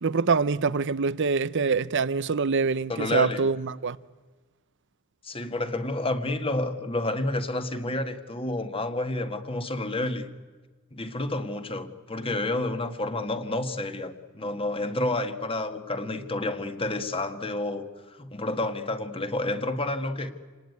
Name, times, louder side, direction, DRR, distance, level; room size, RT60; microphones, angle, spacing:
voice 1, 0.0-4.0, right 5 dB, 60° right, 0.7 m, -25 dB
voice 2, 2.9-3.4 5.2-10.3 10.9-17.9 18.2-20.3, left 2 dB, 25° left, 1.7 m, -29 dB
28.0 x 19.0 x 9.5 m
head